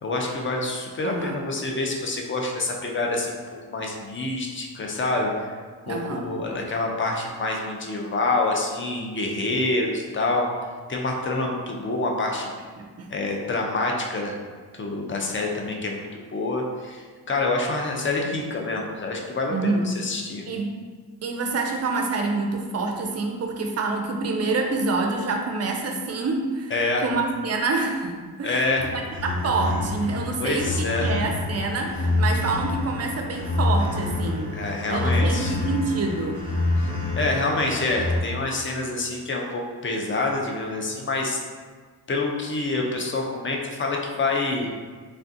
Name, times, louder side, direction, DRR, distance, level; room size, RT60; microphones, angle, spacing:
voice 1, 0.0-3.4 3.7-5.6 5.9-10.5 10.9-12.5 13.1-14.4 14.7-19.5 19.8-20.4 26.7-27.0 28.4-28.9 30.4-31.1 34.5-35.5 36.8-36.9 37.2-41.4 42.1-44.7, left 2 dB, 30° left, 0 dB, 0.5 m, -27 dB
voice 2, 1.0-1.4 5.9-6.2 12.8-13.1 19.5-19.8 20.5-20.7 21.2-26.7 27.0-28.6 29.2-30.7 31.0-34.5 34.9-36.4, right 3 dB, 40° right, 2 dB, 0.5 m, -27 dB
sound 1, 28.8-38.2, left 2 dB, 80° left, 1.1 m, -27 dB
3.3 x 2.3 x 2.6 m, 1.5 s
cardioid pair, 75°, 40 cm